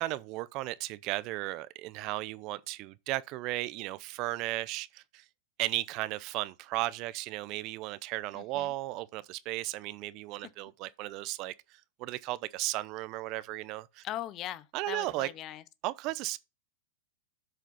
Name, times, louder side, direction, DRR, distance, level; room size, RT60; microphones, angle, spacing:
voice 1, 0.0-5.2 5.6-14.0 14.7-15.3 15.8-16.4, right 17 dB, 45° right, 0.6 m, -35 dB
voice 2, 8.3-8.7 14.0-15.6, left 13 dB, 35° left, 0.7 m, -40 dB
7.7 x 5.0 x 5.5 m
hypercardioid pair, 110°, 0 cm